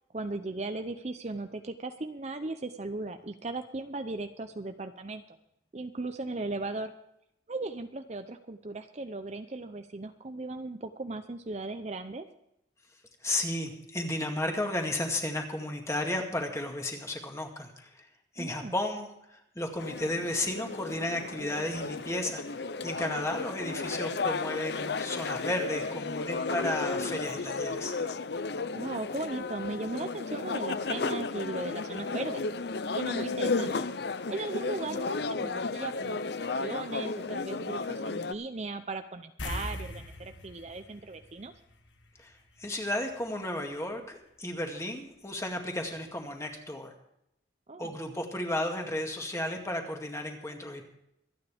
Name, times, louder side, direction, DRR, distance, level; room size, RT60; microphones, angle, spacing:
voice 1, 0.1-5.4 5.7-6.9 7.5-12.2 18.4-18.8 28.7-32.5 32.9-33.9 34.3-41.5 47.7-47.9, right 2 dB, 35° right, 8 dB, 0.6 m, -37 dB
voice 2, 13.2-18.1 18.3-27.9 42.2-46.9 47.8-50.8, left 1 dB, 15° left, 2 dB, 2.0 m, -33 dB
sound 1, 19.8-38.3, left 4 dB, 60° left, 0.6 m, -33 dB
sound 2, 39.4-42.2 42.5-42.7 45.5-45.6 46.0-46.1, left 1 dB, 75° left, 1.7 m, -40 dB
25.5 x 9.5 x 3.5 m, 0.81 s
head